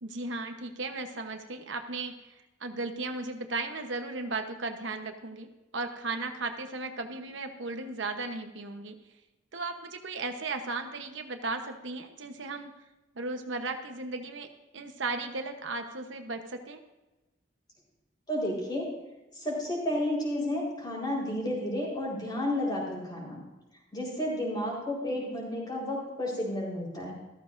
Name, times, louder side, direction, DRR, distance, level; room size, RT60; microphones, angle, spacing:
voice 1, 0.0-5.5 5.7-9.0 9.5-12.7 13.1-14.5 14.7-16.8, right 3 dB, 75° right, 5 dB, 1.0 m, -36 dB
voice 2, 18.3-18.8 19.4-23.4 23.9-27.1, left 1 dB, 25° left, -3 dB, 4.3 m, -31 dB
14.0 x 14.0 x 2.6 m, 1.1 s
head